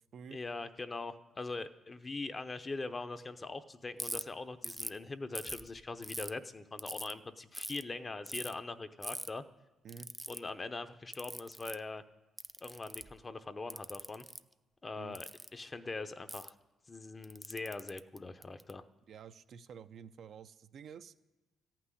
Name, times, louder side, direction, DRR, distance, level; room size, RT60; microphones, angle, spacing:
voice 1, 0.3-9.4 10.3-12.0 12.6-14.2 14.8-16.5 16.9-18.8, left 3 dB, 30° left, 10 dB, 0.7 m, -42 dB
Ratchet pawl, 4.0-4.2 4.6-5.0 5.4-6.3 6.8-7.1 7.5-7.8 8.3-8.5 9.0-9.3 9.9-10.4 11.1-11.8 12.4-13.2 13.7-14.4 15.1-15.5 16.3-16.5 17.2-18.7, right 1 dB, 5° right, 0.4 m, -42 dB
voice 2, 19.1-21.1, right 7 dB, 65° right, 10 dB, 0.5 m, -50 dB
14.0 x 6.0 x 9.8 m, 1.1 s
cardioid pair, 90°, 0 cm